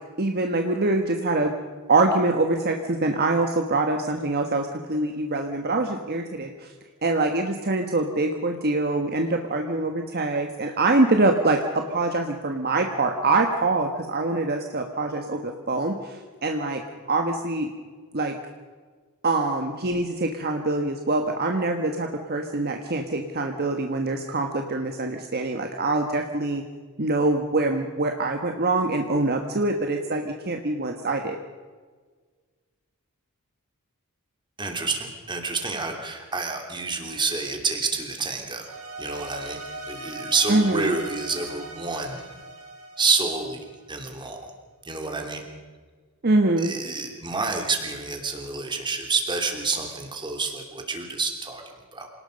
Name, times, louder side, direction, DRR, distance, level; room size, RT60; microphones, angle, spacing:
voice 1, 0.2-1.5 1.9-6.7 7.0-17.7 18.1-18.4 19.2-26.6 27.0-31.4 40.5-41.0 46.2-46.7, right 2 dB, 45° right, 4 dB, 1.4 m, -24 dB
voice 2, 34.6-38.7 39.0-39.6 39.9-42.2 43.0-43.6 43.9-44.5 44.8-45.4 46.6-51.6 51.9-52.1, right 4 dB, 20° right, 3 dB, 3.0 m, -28 dB
sound 1, 38.6-43.9, right 2 dB, 65° right, 6.3 m, -39 dB
27.0 x 19.0 x 5.3 m, 1.5 s
head